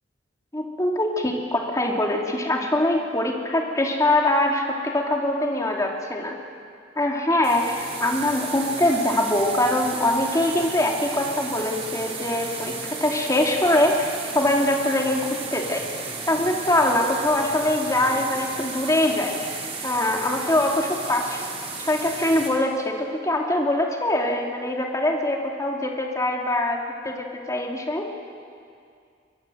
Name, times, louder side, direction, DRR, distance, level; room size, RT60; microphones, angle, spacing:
voice 1, 0.5-6.4 7.0-15.9 16.3-21.4 21.8-28.1, left 1 dB, 20° left, 0 dB, 2.7 m, -23 dB
sound 1, 7.4-22.5, right 4 dB, 35° right, 4.5 m, -34 dB
23.5 x 21.0 x 7.9 m, 2.3 s
head